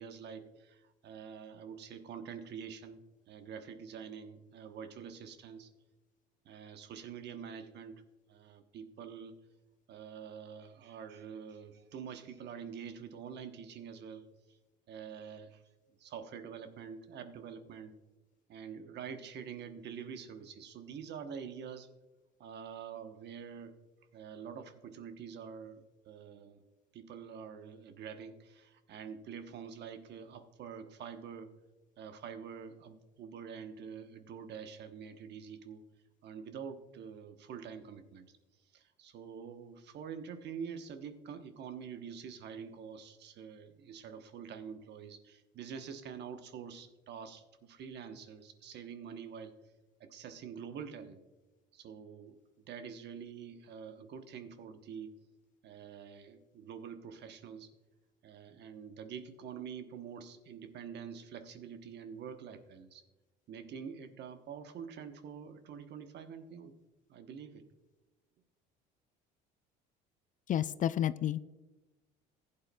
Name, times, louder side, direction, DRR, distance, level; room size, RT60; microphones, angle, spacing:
voice 1, 0.0-5.7 6.4-8.0 8.3-9.4 9.9-14.3 14.9-15.6 16.0-17.9 18.5-21.9 22.4-23.7 24.1-26.6 26.9-31.5 32.0-35.8 36.2-38.3 38.7-49.5 50.0-51.2 51.7-52.4 52.7-55.1 55.6-57.7 58.2-63.0 63.5-66.7 67.1-67.7, right 7 dB, 55° right, 8 dB, 1.0 m, -46 dB
voice 2, 70.5-71.5, left 11 dB, 40° left, 15 dB, 0.4 m, -30 dB
15.0 x 8.7 x 2.3 m, 1.1 s
supercardioid pair, 80°, 21 cm